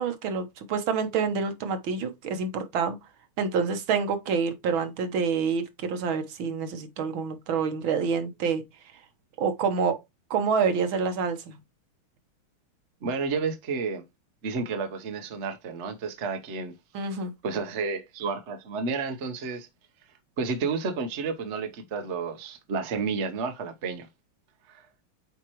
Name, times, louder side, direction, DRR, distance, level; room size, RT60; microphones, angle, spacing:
voice 1, 0.0-3.0 3.4-8.6 9.4-10.0 10.3-11.5 16.9-17.3, right 5 dB, 70° right, 1.9 m, -27 dB
voice 2, 13.0-14.0 14.4-16.8 17.4-19.7 20.4-24.1 24.7-24.9, right 4 dB, 45° right, 1.0 m, -31 dB
8.8 x 4.5 x 3.0 m
omnidirectional pair, 2.3 m